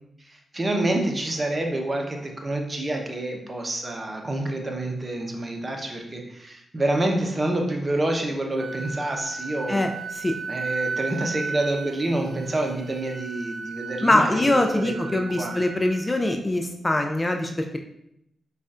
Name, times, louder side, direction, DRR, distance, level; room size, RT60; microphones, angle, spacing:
voice 1, 0.2-9.9 10.5-15.5, right 1 dB, 35° right, 2 dB, 0.7 m, -27 dB
Wind instrument woodwind instrument, 8.6-16.3, right 4 dB, 60° right, 0.3 m, -35 dB
voice 2, 9.7-10.4 14.0-17.8, left 1 dB, 25° left, 4 dB, 0.4 m, -23 dB
5.1 x 2.4 x 2.5 m, 0.78 s
supercardioid pair, 40°, 0 cm